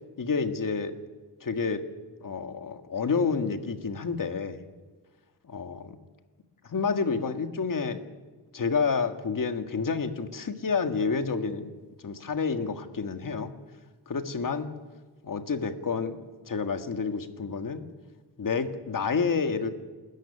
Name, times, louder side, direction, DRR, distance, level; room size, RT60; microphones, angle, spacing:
voice 1, 0.2-0.9 1.4-1.8 2.2-4.7 5.4-6.0 6.7-8.0 8.5-11.7 12.0-13.5 14.1-14.7 15.2-16.2 16.5-17.8 18.4-19.7, left 5 dB, 50° left, 8 dB, 1.8 m, -29 dB
27.0 x 14.0 x 10.0 m, 1.4 s
wide cardioid pair, 145°, 41 cm